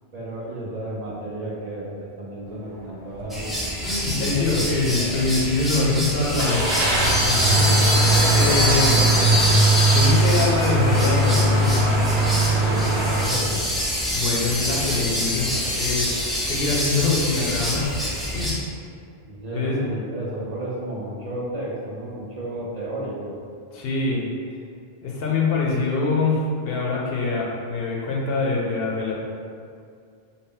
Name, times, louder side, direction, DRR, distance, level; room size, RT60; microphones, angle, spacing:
voice 1, 0.1-3.5 4.3-5.3 7.5-8.7 9.0-9.6 12.6-13.6 19.3-23.4, right 1 dB, 50° right, -5 dB, 0.5 m, -33 dB
sound 1, 3.1-3.3 3.8-3.9 6.4-13.2, right 2 dB, 80° right, 1.0 m, -20 dB
sound 2, 3.3-18.5, equal, ahead, 0.4 m, -25 dB
voice 2, 3.8-6.7 7.0-7.2 8.3-9.0 9.9-12.0 14.1-15.5 15.8-18.0 18.3-18.6 19.5-19.8 23.7-24.3 25.0-29.1, left 3 dB, 70° left, -3 dB, 0.8 m, -24 dB
4.0 x 2.0 x 3.7 m, 2.3 s
omnidirectional pair, 1.1 m